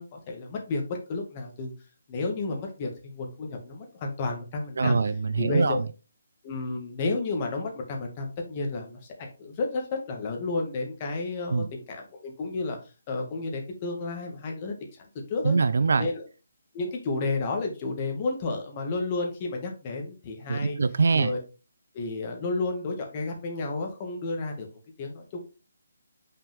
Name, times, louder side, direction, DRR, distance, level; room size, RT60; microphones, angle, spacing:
voice 1, 0.0-1.7 2.1-5.0 5.4-5.8 6.4-9.8 10.1-12.8 13.1-14.9 15.3-15.6 16.0-16.2 16.7-20.8 21.1-21.4 21.9-24.7 25.0-25.4, left 3 dB, 30° left, 1.8 m, -31 dB
voice 2, 4.8-5.9 11.5-11.7 15.4-16.1 20.5-21.3, right 4 dB, 65° right, 0.4 m, -23 dB
5.7 x 5.1 x 3.5 m
figure-of-eight pair, 155°, 0 cm